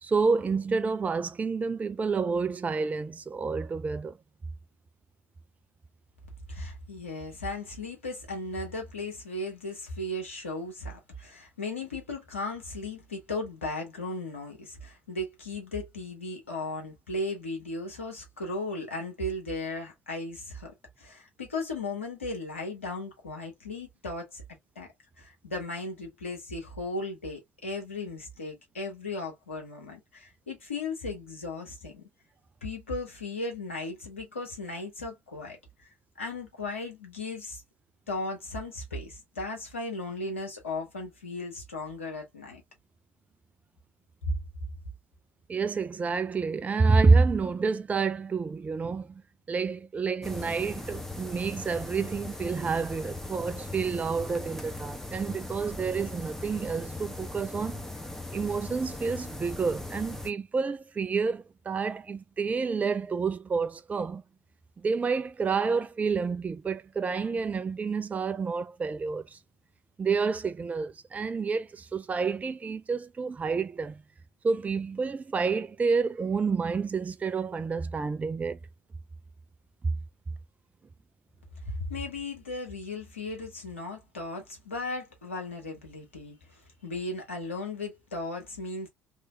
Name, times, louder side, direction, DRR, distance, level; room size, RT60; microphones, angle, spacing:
voice 1, 0.0-4.2 45.5-49.2 49.5-57.8 58.3-64.2 64.8-69.4 70.0-74.0 74.4-78.6 79.8-79.9, right 4 dB, 20° right, 0.4 m, -28 dB
voice 2, 6.5-24.4 24.7-24.9 25.2-32.0 32.6-37.6 38.1-42.6 44.3-44.4 81.7-88.9, left 2 dB, 85° left, 1.2 m, -36 dB
sound 1, 50.2-60.3, left 2 dB, 5° left, 0.9 m, -39 dB
3.2 x 3.0 x 2.3 m
figure-of-eight pair, 55°, 7 cm